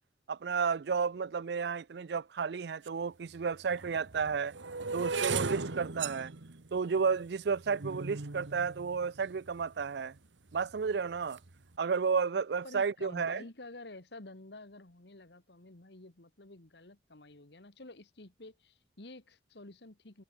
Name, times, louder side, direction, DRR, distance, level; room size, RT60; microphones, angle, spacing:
voice 1, 0.3-4.5 4.9-6.3 6.7-10.2 10.5-11.4 11.8-13.4, right 5 dB, 65° right, 0.4 m, -32 dB
sound 1, 2.9-3.0 3.7-9.9 10.5-10.9 11.1-11.5, right 4 dB, 90° right, 1.4 m, -38 dB
voice 2, 12.6-20.2, left 2 dB, 65° left, 1.8 m, -50 dB
head